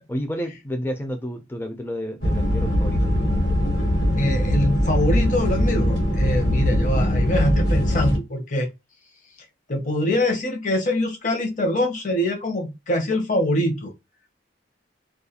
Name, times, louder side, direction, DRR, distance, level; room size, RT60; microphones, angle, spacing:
voice 1, 0.1-3.1, equal, 10° left, 0.4 m, -30 dB
sound 1, 2.2-8.2, equal, 65° left, 1.2 m, -21 dB
voice 2, 4.1-8.7 9.7-13.9, left 1 dB, 40° left, 0.7 m, -24 dB
2.3 x 2.2 x 2.8 m
head